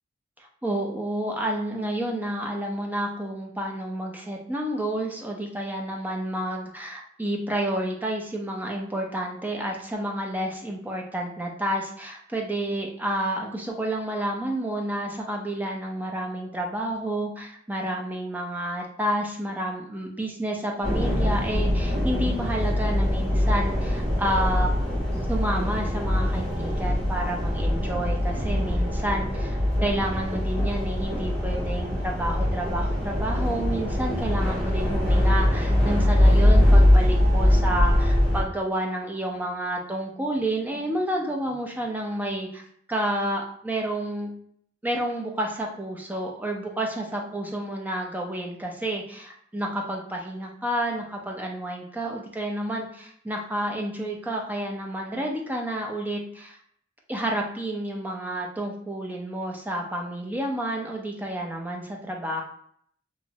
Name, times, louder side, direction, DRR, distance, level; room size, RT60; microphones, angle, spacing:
voice 1, 0.4-24.7 25.3-42.6 42.9-44.3 44.8-56.6 57.1-62.4, right 1 dB, 10° right, 0 dB, 0.5 m, -30 dB
sound 1, 20.8-38.4, left 1 dB, 80° right, 1.2 m, -22 dB
2.9 x 2.2 x 2.7 m, 0.65 s
head